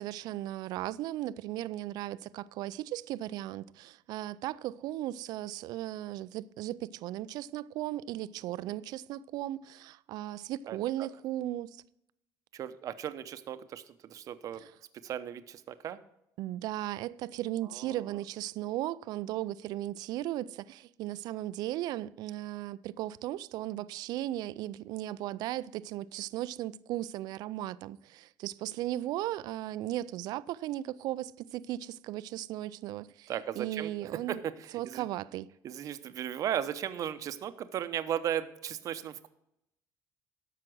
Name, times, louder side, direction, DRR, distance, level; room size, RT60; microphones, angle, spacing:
voice 1, 0.0-11.8 14.6-14.7 16.4-34.4 34.7-35.5, right 14 dB, 75° right, 0.4 m, -36 dB
voice 2, 10.7-11.1 12.5-14.6 15.0-16.0 17.7-18.2 33.3-35.0 35.6-39.3, right 10 dB, 55° right, 0.8 m, -36 dB
12.5 x 5.9 x 6.1 m
cardioid pair, 110°, 7 cm